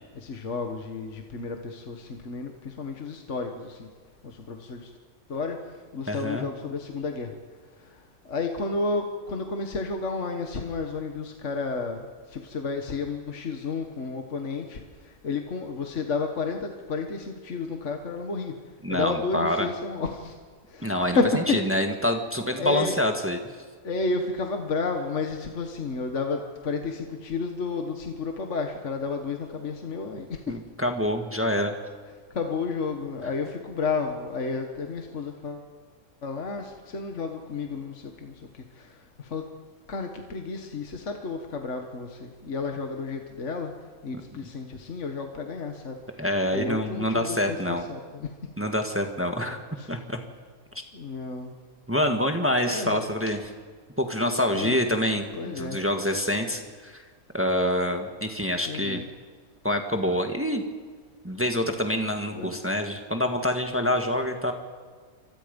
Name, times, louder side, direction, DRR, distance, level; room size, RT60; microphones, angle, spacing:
voice 1, 0.2-3.9 4.2-4.9 5.3-5.6 5.9-7.4 8.3-14.8 15.2-18.5 18.9-20.3 20.7-21.6 22.6-23.0 23.8-30.4 32.3-35.6 36.2-38.3 38.8-38.9 39.2-39.4 39.9-43.7 44.0-46.0 46.5-48.3 49.8-49.9 50.9-51.5 52.7-53.1 54.5-54.8 55.3-55.8 58.6-59.1 62.3-62.5, left 4 dB, 55° left, 4 dB, 1.8 m, -31 dB
voice 2, 6.1-6.4 18.8-19.7 20.8-21.2 21.6-23.4 30.5-31.7 46.2-47.8 48.6-49.6 49.9-50.2 51.9-53.4 54.0-57.0 57.3-59.0 59.6-60.6 61.2-64.5, left 1 dB, 10° right, 4 dB, 1.6 m, -26 dB
28.0 x 25.5 x 5.3 m, 1.5 s
omnidirectional pair, 1.6 m